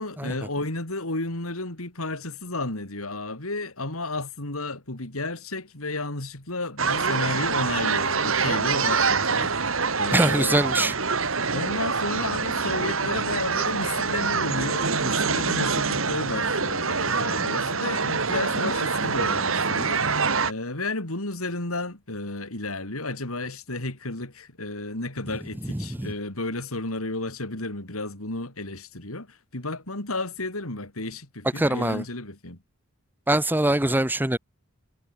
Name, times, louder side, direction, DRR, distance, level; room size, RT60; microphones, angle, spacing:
voice 1, 0.0-10.7 11.5-20.0 20.5-32.6, left 2 dB, 90° left, 4.4 m, -32 dB
sound 1, 6.8-20.5, right 5 dB, 70° right, 2.9 m, -25 dB
voice 2, 10.1-10.9 25.3-26.1 31.5-32.0 33.3-34.4, right 1 dB, 10° right, 0.8 m, -24 dB
head